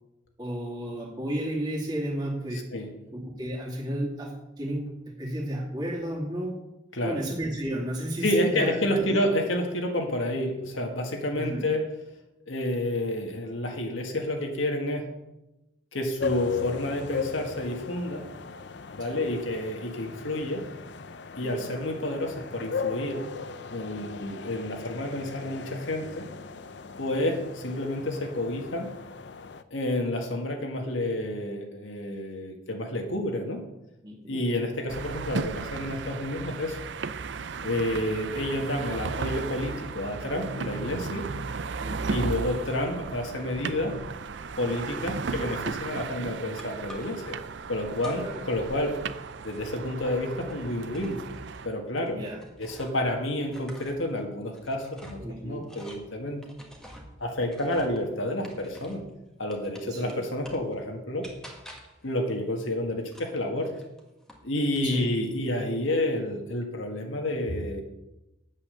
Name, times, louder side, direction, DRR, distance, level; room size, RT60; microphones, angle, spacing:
voice 1, 0.4-2.6 3.2-6.6 7.0-9.2 11.3-11.7 19.0-19.2 21.4-21.5 34.0-34.4 41.8-42.2 45.0-45.3 48.1-48.4 52.1-52.4 55.2-55.6 59.9-60.2 64.8-65.1, right 1 dB, 20° right, -2 dB, 2.3 m, -33 dB
voice 2, 2.5-2.9 6.9-7.2 8.2-11.9 12.5-15.1 15.9-18.2 18.9-20.6 21.4-23.3 23.7-26.3 27.0-28.9 29.7-33.6 34.3-36.8 37.6-41.3 42.1-44.0 44.6-47.4 47.7-49.0 49.4-51.2 51.6-52.2 52.6-56.4 57.2-59.0 59.4-61.3 62.0-63.7 64.4-67.8, left 1 dB, 85° left, 2 dB, 1.8 m, -29 dB
sound 1, 16.2-29.6, left 5 dB, 65° left, 0.6 m, -37 dB
sound 2, 34.9-51.7, right 4 dB, 70° right, 0.5 m, -35 dB
sound 3, 46.6-47.3 48.0-48.5 48.8-53.1 53.4-59.1 59.5-60.7 61.2-62.0 63.1-64.5 64.7-65.3, left 1 dB, 5° left, 1.4 m, -49 dB
8.6 x 8.4 x 6.8 m, 0.95 s
head